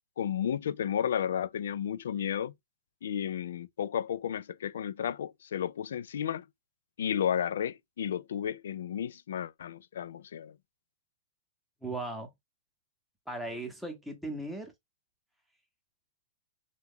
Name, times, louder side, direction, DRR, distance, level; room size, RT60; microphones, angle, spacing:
voice 1, 0.2-2.5 3.0-6.4 7.0-10.5, left 9 dB, 85° left, 0.3 m, -32 dB
voice 2, 11.8-12.3 13.3-14.7, right 2 dB, ahead, 0.8 m, -37 dB
3.0 x 2.2 x 3.5 m
supercardioid pair, 155°, 0 cm